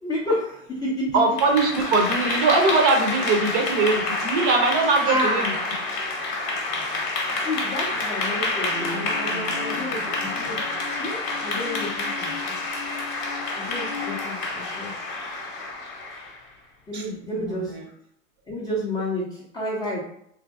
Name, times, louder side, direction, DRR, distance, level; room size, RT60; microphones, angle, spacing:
voice 1, 0.0-1.1 5.1-5.5 6.5-6.6 7.3-10.6 11.0-12.6 13.5-14.9 16.9-17.8 18.5-20.0, left 1 dB, 10° left, -7 dB, 0.4 m, -30 dB
voice 2, 1.1-5.6 16.9-17.0 17.4-17.9, right 3 dB, 40° right, 2 dB, 0.6 m, -21 dB
Clapping / Applause, 1.2-16.4, left 3 dB, 30° left, 0.8 m, -28 dB
sound 1, 8.7-14.2, left 4 dB, 65° right, 0.9 m, -38 dB
2.7 x 2.6 x 2.3 m, 0.71 s
hypercardioid pair, 120°, 40 cm